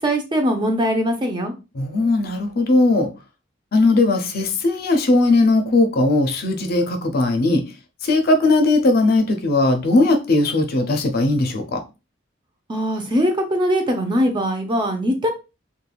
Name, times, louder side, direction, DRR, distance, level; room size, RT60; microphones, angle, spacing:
voice 1, 0.0-1.5 12.7-15.3, equal, 25° right, 0.5 m, -21 dB
voice 2, 1.7-3.1 3.7-7.6 8.0-11.8, left 2 dB, 50° left, 0.5 m, -18 dB
3.3 x 2.2 x 2.2 m
head